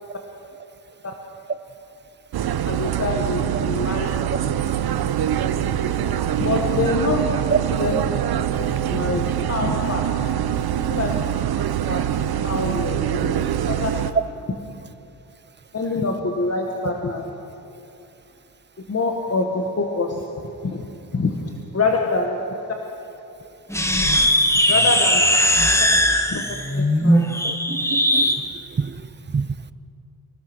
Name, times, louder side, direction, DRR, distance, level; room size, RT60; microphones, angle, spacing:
sound 1, 2.3-14.1, right 10 dB, 85° right, 0.9 m, -24 dB
voice 1, 2.7-4.1 6.4-7.4 7.8-8.0 8.9-10.0 10.9-11.2 11.9-12.0 12.4-13.4 13.7-13.9 15.7-17.2 18.9-20.2 20.6-20.8 21.1-21.4 21.7-22.4 24.0-24.2 24.7-25.2 26.3-26.4 26.7-27.3, left 3 dB, 40° left, 1 dB, 1.9 m, -25 dB
sound 2, 23.7-28.4, equal, 5° left, 1.6 m, -19 dB
voice 2, 27.4-29.7, right 6 dB, 30° right, 15 dB, 0.7 m, -27 dB
25.0 x 17.0 x 6.4 m, 2.8 s
cardioid pair, 90°, 36 cm